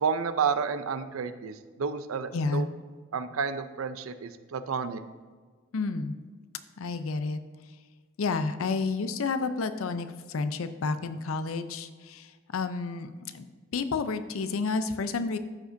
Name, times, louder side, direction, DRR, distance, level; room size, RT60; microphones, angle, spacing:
voice 1, 0.0-2.7 3.1-5.0, right 6 dB, 90° right, 11 dB, 0.5 m, -30 dB
voice 2, 2.3-2.6 5.7-6.1 6.8-7.4 8.2-13.5 13.7-15.4, left 4 dB, 80° left, 10 dB, 0.5 m, -30 dB
12.5 x 5.1 x 2.6 m, 1.4 s
head